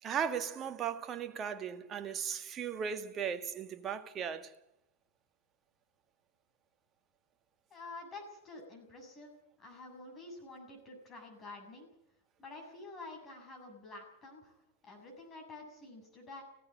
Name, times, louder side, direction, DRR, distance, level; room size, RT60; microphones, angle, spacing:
voice 1, 0.0-4.6, right 7 dB, 25° right, 1.7 m, -37 dB
voice 2, 7.7-9.3 9.6-11.9 12.4-14.5 14.8-16.4, left 2 dB, 25° left, 7.4 m, -49 dB
16.5 x 16.5 x 9.6 m
figure-of-eight pair, 90°, 0 cm